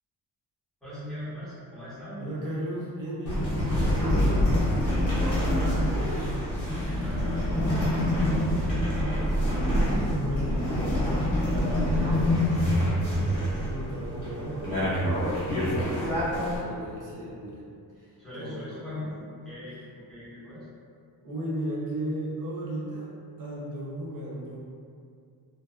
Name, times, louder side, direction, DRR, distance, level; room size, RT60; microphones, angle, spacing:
voice 1, 0.8-2.2 5.3-6.2 6.6-8.9 18.2-20.7, left 1 dB, ahead, -13 dB, 1.0 m, -41 dB
voice 2, 2.2-4.4 9.7-19.0 21.2-23.1 23.4-24.6, right 1 dB, 55° right, -5 dB, 0.5 m, -36 dB
sound 1, 3.3-16.6, left 1 dB, 35° left, 0.8 m, -26 dB
2.6 x 2.2 x 2.2 m, 2.3 s
wide cardioid pair, 175°, 40 cm